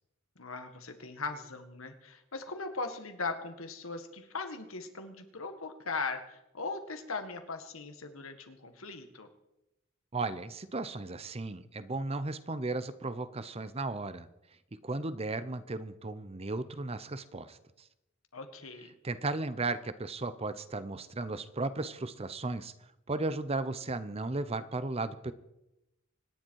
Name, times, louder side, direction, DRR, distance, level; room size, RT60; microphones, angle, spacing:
voice 1, 0.4-9.3 18.3-19.0, left 3 dB, 85° left, 7 dB, 1.9 m, -39 dB
voice 2, 10.1-14.3 14.8-17.6 19.0-22.7 23.1-25.3, right 2 dB, 30° right, 13 dB, 0.8 m, -35 dB
25.0 x 10.5 x 4.7 m, 0.90 s
head